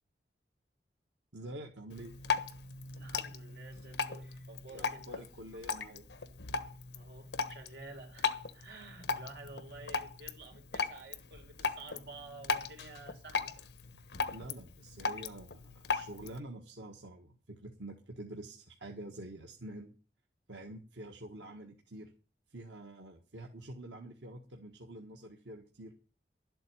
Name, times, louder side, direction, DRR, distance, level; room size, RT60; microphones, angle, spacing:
voice 1, 1.3-2.1 4.7-6.0 13.9-19.9 20.5-22.1 22.5-25.9, right 1 dB, 90° right, 1.6 m, -47 dB
Drip, 1.9-16.4, left 5 dB, 70° left, 1.2 m, -38 dB
voice 2, 2.9-5.2 6.9-13.6, right 2 dB, 70° right, 4.0 m, -51 dB
12.0 x 7.9 x 9.2 m
head